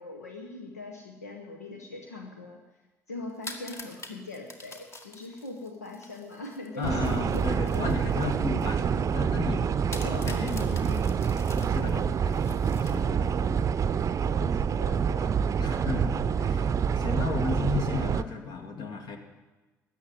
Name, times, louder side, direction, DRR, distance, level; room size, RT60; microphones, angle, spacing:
voice 1, 0.0-2.6 3.1-7.9 9.9-10.2 14.4-15.3, left 2 dB, 90° left, 3 dB, 0.9 m, -41 dB
sound 1, 3.3-8.8 9.1-9.2 9.9-13.4, left 2 dB, 35° left, 1.9 m, -46 dB
voice 2, 6.8-9.7 10.0-11.1 11.5-13.8 15.6-19.2, left 4 dB, 55° left, 4 dB, 2.0 m, -34 dB
sound 2, 6.8-18.2, right 7 dB, 40° right, 0.6 m, -27 dB
13.0 x 8.1 x 9.1 m, 1.2 s
hypercardioid pair, 50°, 8 cm